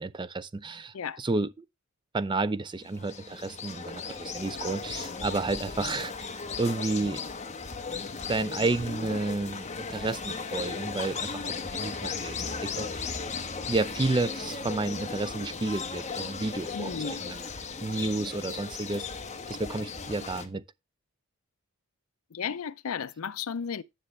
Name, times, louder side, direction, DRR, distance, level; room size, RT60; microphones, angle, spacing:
voice 1, 0.0-1.6 2.1-7.2 8.3-13.1 13.7-17.4 17.8-19.1 19.5-20.6, right 3 dB, 20° right, 0.4 m, -31 dB
sound 1, 2.8-20.5, left 5 dB, 30° left, 1.1 m, -36 dB
voice 2, 16.7-17.2 22.3-23.8, left 7 dB, 70° left, 0.5 m, -34 dB
10.0 x 6.8 x 3.1 m
head